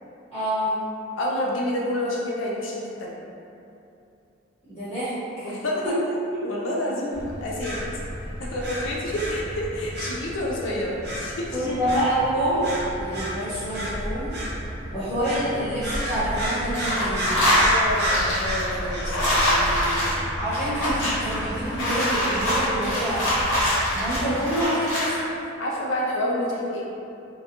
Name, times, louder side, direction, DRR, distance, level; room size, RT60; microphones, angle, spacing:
voice 1, 0.3-0.8 4.7-5.5 5.8-5.9 6.3-6.4 11.5-12.7 12.9-14.3 14.9-17.3 20.4-23.2 23.9-25.1, right 1 dB, 20° left, -14 dB, 0.9 m, -27 dB
voice 2, 1.2-3.1 5.4-5.9 6.4-7.8 8.4-11.7 17.5-20.2 25.6-26.9, left 1 dB, 70° left, -3 dB, 0.3 m, -29 dB
sound 1, 7.1-24.4, equal, 55° right, 0.6 m, -32 dB
sound 2, 15.7-16.5 16.7-25.2, equal, 85° left, 1.1 m, -24 dB
2.7 x 2.2 x 2.5 m, 2.7 s
head